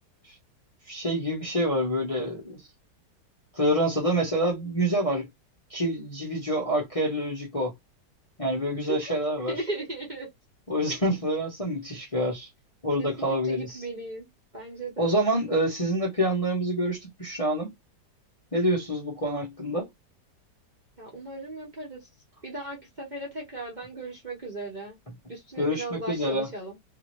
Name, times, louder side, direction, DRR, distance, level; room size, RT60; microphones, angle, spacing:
voice 1, 0.9-2.7 3.5-5.3 5.7-7.7 8.4-9.5 10.7-12.5 12.8-13.8 15.0-17.7 18.5-19.9 25.6-26.5, equal, 25° left, 0.8 m, -27 dB
voice 2, 8.8-9.1 9.5-10.3 13.0-14.3 14.5-15.1 21.0-22.1 22.4-25.0 25.3-26.8, right 2 dB, 30° right, 0.9 m, -37 dB
2.9 x 2.7 x 3.1 m
omnidirectional pair, 1.9 m